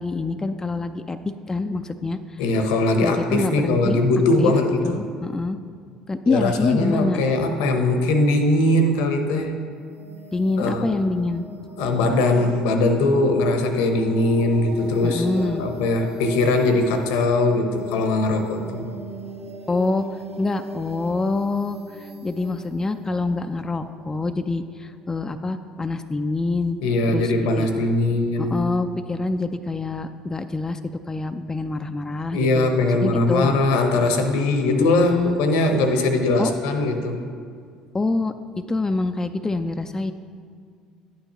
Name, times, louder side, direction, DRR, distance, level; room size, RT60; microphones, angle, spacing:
voice 1, 0.0-2.4 3.0-4.0 4.4-4.5 4.8-5.6 6.1-7.2 10.3-11.4 15.0-15.7 19.7-20.0 20.4-26.8 27.1-27.7 28.4-33.6 34.7-35.4 36.4-36.5 37.9-38.3 38.7-40.1, left 3 dB, 20° left, 8 dB, 0.4 m, -26 dB
voice 2, 2.4-5.0 6.2-9.5 10.6-11.0 11.8-18.9 26.8-28.6 32.3-37.2, left 2 dB, 75° left, 6 dB, 0.9 m, -21 dB
sound 1, 9.7-24.4, right 1 dB, 75° right, 1.9 m, -38 dB
11.0 x 8.8 x 3.0 m, 2.1 s
hypercardioid pair, 65°, 3 cm